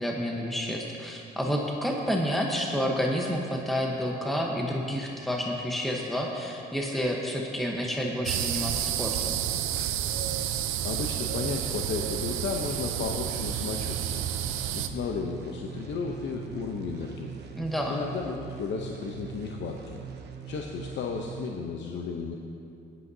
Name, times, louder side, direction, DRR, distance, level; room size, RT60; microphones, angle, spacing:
voice 1, 0.0-9.4 17.5-18.0, equal, ahead, -1 dB, 1.1 m, -29 dB
sound 1, 8.3-14.9, right 11 dB, 90° right, 0.5 m, -30 dB
voice 2, 10.8-14.2 14.7-17.3 17.9-20.0 20.5-22.4, left 5 dB, 65° left, 1 dB, 0.8 m, -33 dB
sound 2, 13.7-21.5, right 7 dB, 55° right, 1.0 m, -42 dB
16.0 x 11.0 x 2.8 m, 2.7 s
cardioid pair, 90°, 20 cm